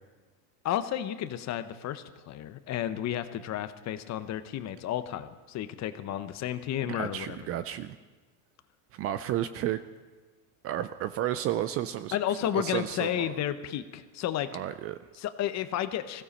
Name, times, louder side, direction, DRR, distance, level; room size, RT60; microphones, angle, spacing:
voice 1, 0.6-7.4 12.1-14.5 15.2-16.2, left 11 dB, 35° left, 11 dB, 0.8 m, -32 dB
voice 2, 6.9-8.0 8.9-9.8 10.6-13.4 14.5-15.0, right 12 dB, 35° right, 13 dB, 0.4 m, -32 dB
20.0 x 16.0 x 4.2 m, 1.3 s
supercardioid pair, 120°, 46 cm